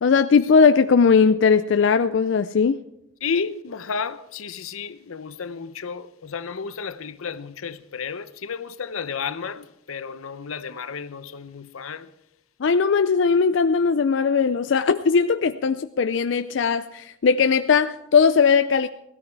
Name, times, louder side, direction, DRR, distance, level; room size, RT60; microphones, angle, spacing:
voice 1, 0.0-2.8 12.6-18.9, left 5 dB, 60° left, 0.4 m, -19 dB
voice 2, 3.2-12.1, left 5 dB, 85° left, 0.7 m, -32 dB
17.0 x 13.0 x 4.6 m
head